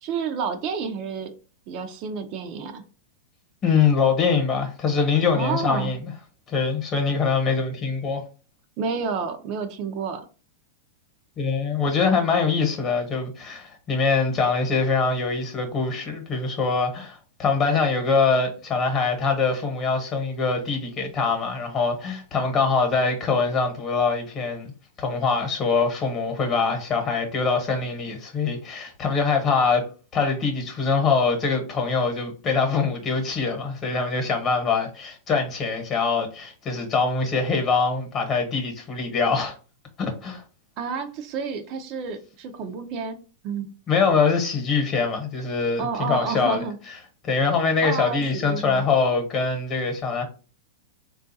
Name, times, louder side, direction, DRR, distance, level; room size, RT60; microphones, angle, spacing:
voice 1, 0.0-1.3 1.7-2.8 5.3-5.9 8.8-10.3 40.8-43.2 43.4-43.7 45.8-46.8 47.8-48.8, right 5 dB, 40° right, 0.5 m, -30 dB
voice 2, 3.6-6.0 6.5-8.2 11.4-24.7 25.0-39.5 40.0-40.4 43.9-47.0 47.2-50.2, left 4 dB, 30° left, 1.0 m, -23 dB
3.6 x 2.3 x 2.6 m
hypercardioid pair, 135°, 0 cm